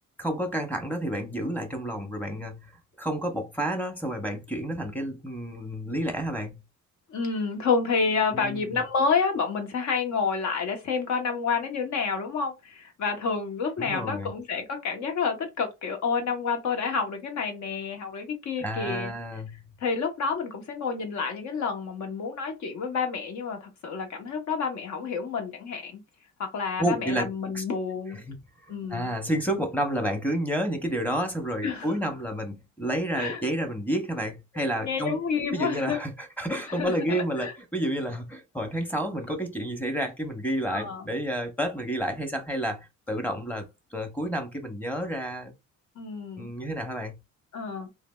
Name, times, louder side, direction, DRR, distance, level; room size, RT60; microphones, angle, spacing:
voice 1, 0.2-2.6 3.0-6.5 8.3-8.7 13.8-14.3 18.6-19.5 26.8-27.6 28.3-28.4 28.6-35.2 35.5-45.5 46.4-47.1, right 1 dB, 5° left, 0.8 m, -30 dB
voice 2, 7.1-19.1 19.8-26.0 26.4-28.2 28.7-29.1 31.6-31.9 33.1-33.4 34.8-36.0 36.7-37.5 40.7-41.1 46.0-46.5 47.5-47.9, left 5 dB, 70° left, 1.0 m, -29 dB
3.2 x 2.2 x 2.3 m
cardioid pair, 90°, 30 cm